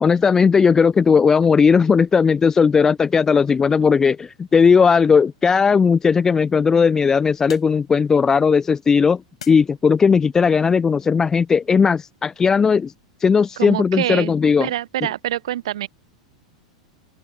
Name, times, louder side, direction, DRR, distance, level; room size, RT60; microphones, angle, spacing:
voice 1, 0.0-9.2 9.5-12.9 13.2-14.7, left 5 dB, 15° left, 0.3 m, -16 dB
sound 1, 4.2-10.3, left 8 dB, 70° left, 7.2 m, -49 dB
voice 2, 13.6-14.3 14.6-15.9, right 13 dB, 60° right, 0.9 m, -25 dB
open air
figure-of-eight pair, 90°, 3 cm